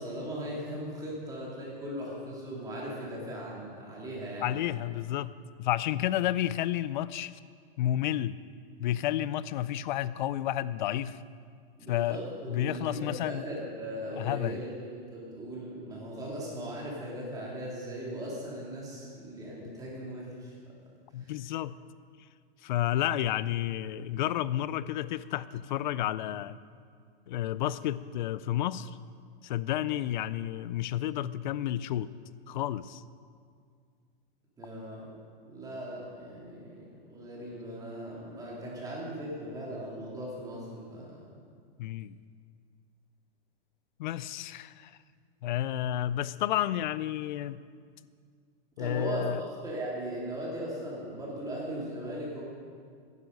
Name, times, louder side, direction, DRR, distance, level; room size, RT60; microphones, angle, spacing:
voice 1, 0.0-4.6 11.8-20.6 21.2-21.3 34.6-35.1 35.4-41.4 48.8-49.3 49.6-52.4, right 1 dB, 10° right, -5 dB, 3.0 m, -38 dB
voice 2, 4.4-5.3 5.6-7.3 7.8-8.4 8.8-11.2 11.9-12.2 12.5-13.4 14.2-14.6 21.1-21.8 22.6-26.6 27.3-29.0 29.4-32.1 32.5-33.0 41.8-42.2 44.0-44.9 45.4-47.6 48.8-49.4, left 12 dB, 55° left, 17 dB, 0.5 m, -31 dB
14.5 x 10.5 x 5.3 m, 2.1 s
supercardioid pair, 155°, 29 cm